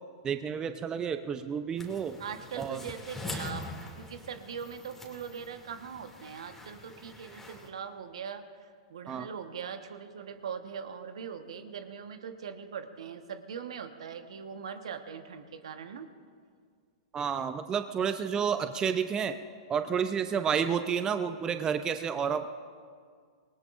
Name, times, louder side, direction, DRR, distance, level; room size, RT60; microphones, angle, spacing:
voice 1, 0.2-2.2 2.6-2.8 9.1-9.3 17.1-19.4 19.7-22.5, right 7 dB, 20° right, 9 dB, 0.6 m, -30 dB
sound 1, 1.8-7.7, left 2 dB, 10° left, 2.6 m, -44 dB
voice 2, 2.2-16.1, right 7 dB, 70° right, 7 dB, 1.3 m, -41 dB
26.5 x 20.0 x 2.6 m, 2.1 s
hypercardioid pair, 115°, 3 cm